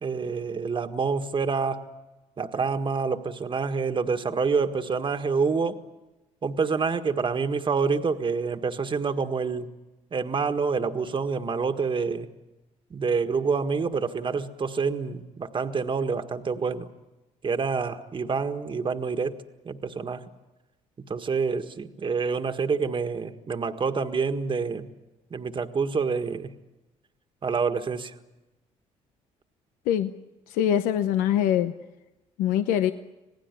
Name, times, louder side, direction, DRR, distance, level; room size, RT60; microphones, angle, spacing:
voice 1, 0.0-1.8 2.4-5.8 6.4-9.7 10.1-12.3 12.9-16.9 17.4-19.4 19.6-20.2 21.1-24.9 25.3-26.5 27.4-28.1, right 5 dB, 35° right, 7 dB, 1.6 m, -27 dB
voice 2, 30.5-31.7 32.4-32.9, left 10 dB, 90° left, 9 dB, 0.8 m, -23 dB
27.0 x 18.0 x 9.7 m, 1.0 s
cardioid pair, 80°, 14 cm